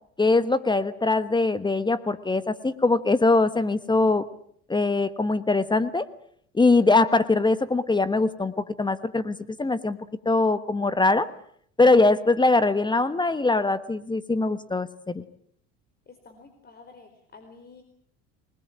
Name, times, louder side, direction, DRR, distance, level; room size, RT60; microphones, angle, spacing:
voice 1, 0.2-4.2 4.7-6.1 6.5-10.0 10.2-11.3 11.8-15.2, left 3 dB, 15° left, 14 dB, 1.3 m, -22 dB
voice 2, 16.1-17.8, left 4 dB, 30° left, 8 dB, 4.2 m, -50 dB
26.5 x 20.5 x 8.8 m, 0.65 s
supercardioid pair, 100°, 31 cm